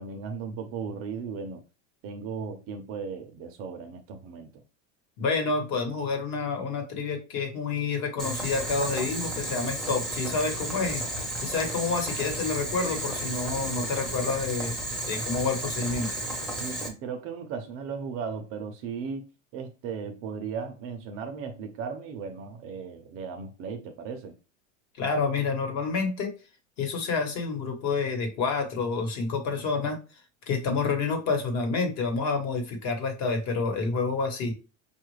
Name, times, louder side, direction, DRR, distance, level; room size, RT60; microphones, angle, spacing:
voice 1, 0.0-1.6 2.0-4.5 16.6-19.2 19.5-24.3, right 6 dB, 35° right, 0.6 m, -36 dB
voice 2, 5.2-14.8 15.1-16.1 25.0-26.3 26.8-30.0 30.5-34.5, left 4 dB, 45° left, 1.2 m, -28 dB
Boiling, 8.2-16.9, right 1 dB, ahead, 0.7 m, -33 dB
5.3 x 2.4 x 3.2 m
supercardioid pair, 145°, 40 cm